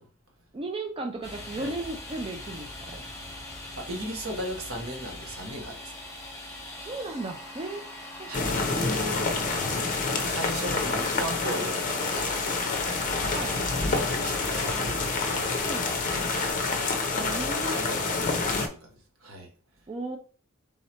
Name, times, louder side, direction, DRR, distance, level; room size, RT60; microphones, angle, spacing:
voice 1, 0.5-3.0 6.8-7.8 8.2-8.3 13.3-13.6 15.7-15.9 17.1-18.4 19.9-20.2, right 2 dB, 25° right, 0.4 m, -36 dB
Domestic sounds home sounds, 1.2-16.5, left 1 dB, 15° left, 1.1 m, -41 dB
voice 2, 3.8-5.8 8.3-9.3 10.1-12.7 13.2-16.6 17.2-18.8 19.2-19.5, right 1 dB, 65° right, 1.1 m, -38 dB
sound 1, 8.3-18.7, left 3 dB, 35° left, 0.6 m, -28 dB
3.7 x 2.9 x 4.2 m
head